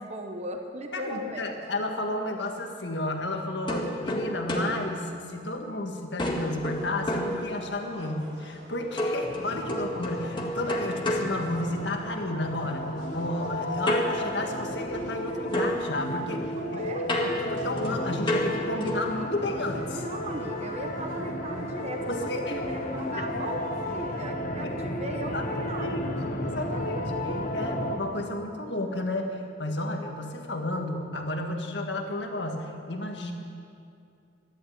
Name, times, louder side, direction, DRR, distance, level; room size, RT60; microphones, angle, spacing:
voice 1, 0.0-1.6 16.5-17.1 20.0-26.1 26.7-26.8, right 1 dB, 35° right, 4 dB, 1.0 m, -37 dB
voice 2, 0.9-16.8 17.2-20.1 22.1-22.6 23.2-23.3 24.6-24.8 25.3-33.3, left 1 dB, 65° left, 3 dB, 1.8 m, -32 dB
sound 1, 3.7-5.8 6.2-8.0 9.0-12.2 13.9-15.2 15.5-19.2, left 1 dB, 25° left, 1.8 m, -32 dB
sound 2, 6.3-24.2, right 1 dB, 80° right, 3.7 m, -50 dB
sound 3, 9.2-28.0, left 1 dB, 45° left, 1.2 m, -33 dB
14.0 x 11.5 x 8.6 m, 2.5 s
head